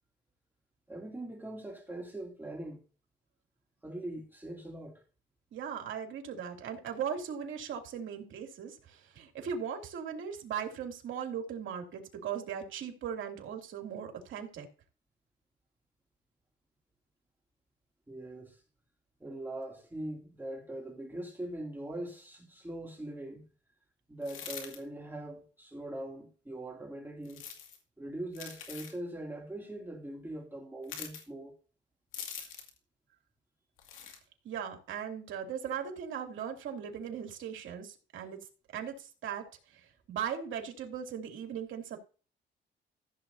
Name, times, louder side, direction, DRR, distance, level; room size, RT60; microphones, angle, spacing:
voice 1, 0.9-2.8 3.8-5.0 18.1-18.6 19.2-23.5 24.1-27.4 28.0-31.6, right 1 dB, 10° right, 2.7 m, -42 dB
voice 2, 5.5-14.7 34.4-38.4 38.7-42.0, right 8 dB, 75° right, 2.7 m, -38 dB
sound 1, 24.2-24.8 27.2-27.8 28.3-29.0 30.8-31.2 32.1-32.8 33.8-34.2, left 8 dB, 90° left, 2.3 m, -43 dB
15.0 x 8.0 x 2.7 m
cardioid pair, 90°, 20 cm